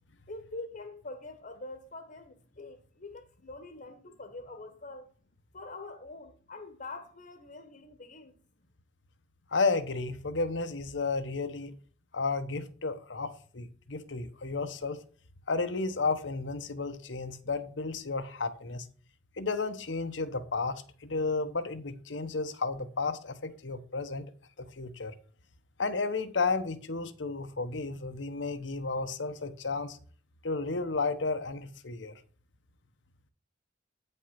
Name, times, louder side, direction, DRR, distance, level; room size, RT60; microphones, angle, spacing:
voice 1, 0.3-5.1 5.5-8.3, left 2 dB, 45° left, 1.2 m, -44 dB
voice 2, 9.5-11.8 12.1-15.0 15.5-18.9 19.4-24.3 24.6-25.1 25.8-30.0 30.4-32.2, left 3 dB, 80° left, 1.1 m, -32 dB
9.3 x 5.5 x 5.9 m
head